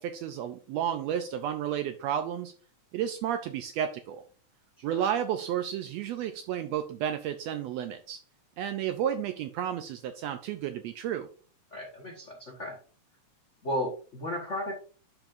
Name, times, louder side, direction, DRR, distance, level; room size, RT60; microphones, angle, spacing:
voice 1, 0.0-2.5 2.9-4.2 4.8-8.2 8.6-11.3, right 9 dB, 80° right, 9 dB, 1.5 m, -32 dB
voice 2, 11.7-12.8 13.6-14.7, equal, 70° left, 0 dB, 0.7 m, -34 dB
10.5 x 5.3 x 2.5 m, 0.40 s
omnidirectional pair, 3.4 m